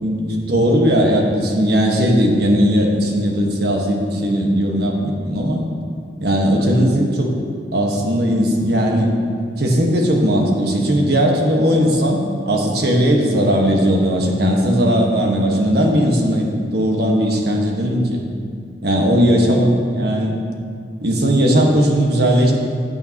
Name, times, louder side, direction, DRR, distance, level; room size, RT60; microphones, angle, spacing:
voice 1, 0.0-5.6 6.2-7.3 7.7-9.1 9.6-18.2 18.8-20.4 21.0-22.5, equal, 65° right, 0 dB, 1.4 m, -17 dB
15.0 x 8.9 x 2.9 m, 2.3 s
head